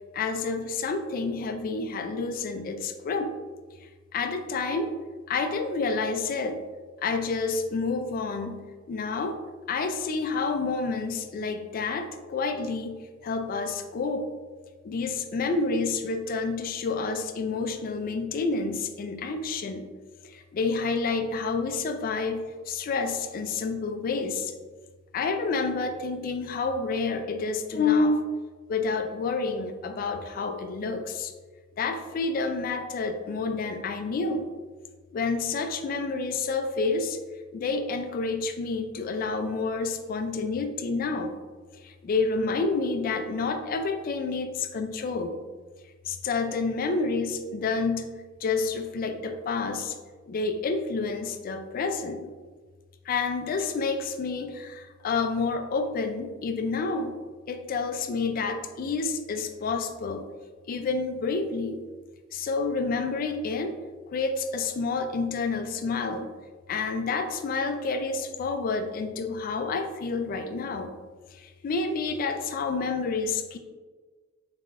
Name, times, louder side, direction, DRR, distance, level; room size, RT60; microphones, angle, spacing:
voice 1, 0.1-3.3 4.1-4.9 5.3-6.6 7.0-8.6 8.9-9.4 9.7-14.3 14.8-19.9 20.2-24.5 25.1-28.4 28.7-31.3 31.8-34.5 35.1-37.2 37.5-41.4 41.7-45.4 46.1-48.1 48.4-50.0 50.3-52.3 53.1-57.2 57.5-60.3 60.7-61.8 62.3-63.8 64.1-66.3 66.7-70.9 71.3-73.6, left 4 dB, 45° left, 7 dB, 0.3 m, -29 dB
3.7 x 3.6 x 2.5 m, 1.4 s
head